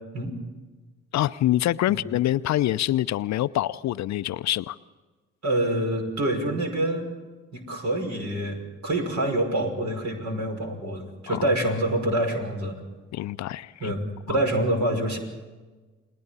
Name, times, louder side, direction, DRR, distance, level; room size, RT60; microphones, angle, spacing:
voice 1, 1.1-4.8 11.3-11.4 13.1-13.9 14.3-14.4, left 14 dB, 50° left, 16 dB, 0.6 m, -25 dB
voice 2, 5.4-7.1 7.5-12.8 13.8-14.0 14.3-15.2, right 1 dB, 50° right, 2 dB, 5.6 m, -26 dB
30.0 x 20.5 x 4.2 m, 1.3 s
hypercardioid pair, 45°, 35 cm